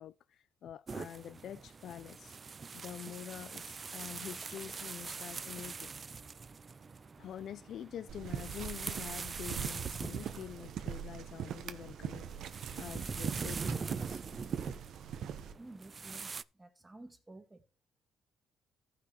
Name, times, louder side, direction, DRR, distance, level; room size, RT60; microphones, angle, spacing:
voice 1, 0.0-2.4 2.7-5.9 7.2-12.3 12.8-14.4 14.7-14.8, left 10 dB, 70° left, 0.3 m, -46 dB
sound 1, 0.9-16.4, right 5 dB, 35° right, 0.3 m, -43 dB
Bowed string instrument, 4.5-9.9, equal, 45° left, 2.3 m, -67 dB
sound 2, 8.1-15.5, right 9 dB, 70° right, 0.8 m, -42 dB
voice 2, 15.6-17.7, right 2 dB, 15° right, 1.6 m, -53 dB
15.0 x 5.8 x 3.0 m
cardioid pair, 90°, 0 cm